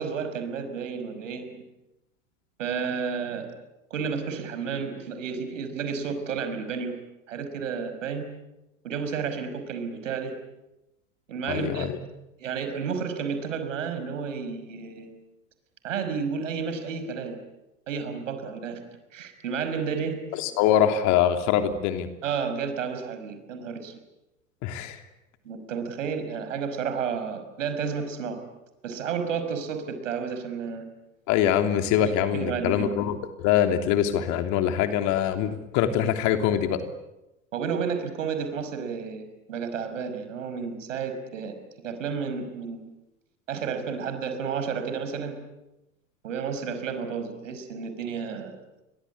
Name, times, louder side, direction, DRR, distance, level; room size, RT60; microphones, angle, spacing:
voice 1, 0.0-1.6 2.6-3.5 3.9-6.9 7.3-8.3 8.8-10.4 11.3-11.9 12.4-15.1 15.8-17.4 17.9-18.8 19.1-20.2 22.2-23.9 25.4-28.4 28.8-30.9 32.3-32.9 37.5-42.9 43.5-45.4 46.2-48.6, right 6 dB, 65° right, 8 dB, 5.7 m, -31 dB
voice 2, 11.5-12.0 20.4-22.1 24.6-25.0 31.3-36.8, left 10 dB, 45° left, 7 dB, 3.2 m, -24 dB
29.5 x 23.5 x 8.5 m, 0.96 s
figure-of-eight pair, 85°, 40 cm